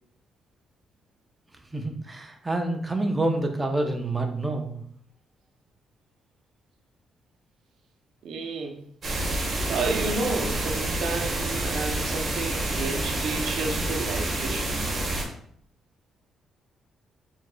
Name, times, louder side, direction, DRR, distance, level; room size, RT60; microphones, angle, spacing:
voice 1, 1.7-4.8, right 2 dB, 20° right, 4 dB, 0.7 m, -27 dB
voice 2, 8.2-8.8 9.3-14.9, right 3 dB, 70° right, 4 dB, 0.6 m, -31 dB
sound 1, 9.0-15.2, right 1 dB, 45° right, 1.3 m, -28 dB
4.6 x 3.8 x 2.2 m, 0.64 s
cardioid pair, 85°, 0 cm